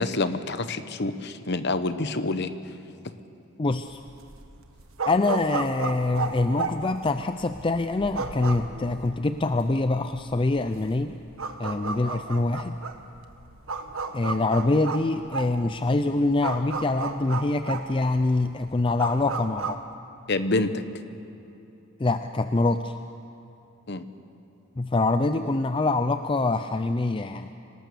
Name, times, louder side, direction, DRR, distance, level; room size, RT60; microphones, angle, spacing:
voice 1, 0.0-2.5 20.3-20.8 23.9-24.0, left 2 dB, 55° left, 11 dB, 1.0 m, -27 dB
voice 2, 3.6-4.0 5.1-11.2 11.6-12.8 14.1-19.8 22.0-22.9 24.8-27.5, left 2 dB, 25° left, 9 dB, 0.5 m, -25 dB
sound 1, 3.9-19.8, right 4 dB, 85° right, 1.4 m, -34 dB
25.5 x 18.5 x 6.8 m, 2.9 s
head